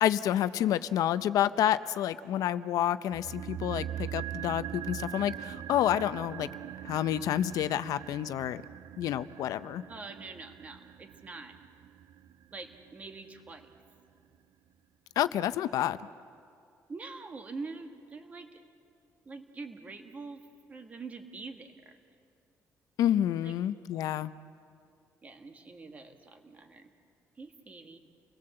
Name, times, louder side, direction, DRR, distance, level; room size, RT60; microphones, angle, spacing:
voice 1, 0.0-6.5 6.8-8.6 9.0-9.8 15.2-16.0 23.0-24.3, left 11 dB, 75° left, 13 dB, 0.6 m, -29 dB
sound 1, 3.1-13.4 13.6-13.7, right 11 dB, 75° right, 0.5 m, -42 dB
voice 2, 9.9-11.5 12.5-13.7 16.9-18.6 19.2-20.4 20.7-22.0 23.4-23.6 25.2-26.9 27.4-28.0, right 3 dB, 25° right, 5 dB, 1.7 m, -44 dB
29.0 x 20.5 x 7.8 m, 2.3 s
cardioid pair, 180°, 6 cm